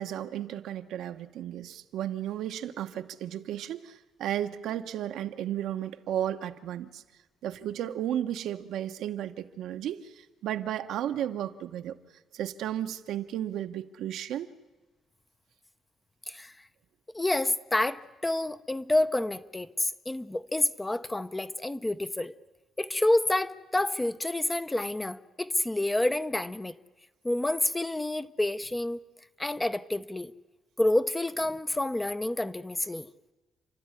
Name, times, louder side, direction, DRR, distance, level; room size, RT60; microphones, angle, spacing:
voice 1, 0.0-7.0 7.4-12.0 12.3-14.5, right 11 dB, 80° right, 7 dB, 1.1 m, -34 dB
voice 2, 17.1-22.3 22.8-26.7 27.2-29.0 29.4-30.3 30.8-33.1, left 1 dB, 15° left, 12 dB, 0.7 m, -28 dB
29.5 x 12.5 x 9.8 m, 1.2 s
cardioid pair, 115°, 0 cm